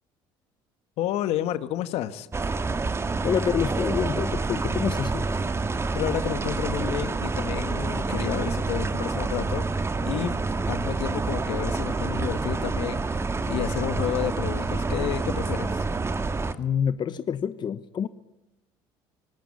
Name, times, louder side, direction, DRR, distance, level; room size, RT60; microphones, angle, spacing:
voice 1, 1.0-2.3 5.9-10.3 10.6-15.8, left 12 dB, 70° left, 1.7 m, -31 dB
sound 1, 2.3-16.5, right 3 dB, 25° right, 1.9 m, -28 dB
voice 2, 3.2-5.3 16.6-18.1, left 8 dB, 45° left, 1.2 m, -27 dB
26.5 x 18.5 x 9.7 m
supercardioid pair, 80°, 11 cm